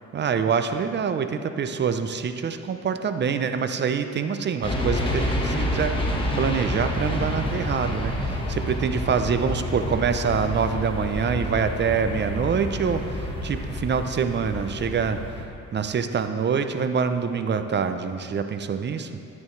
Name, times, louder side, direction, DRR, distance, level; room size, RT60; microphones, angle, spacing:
voice 1, 0.1-15.2 15.7-19.2, right 6 dB, 35° right, 9 dB, 0.6 m, -25 dB
sound 1, 4.6-15.4, left 1 dB, 15° left, 1.5 m, -28 dB
10.5 x 9.5 x 3.2 m, 2.8 s
cardioid pair, 90°, 30 cm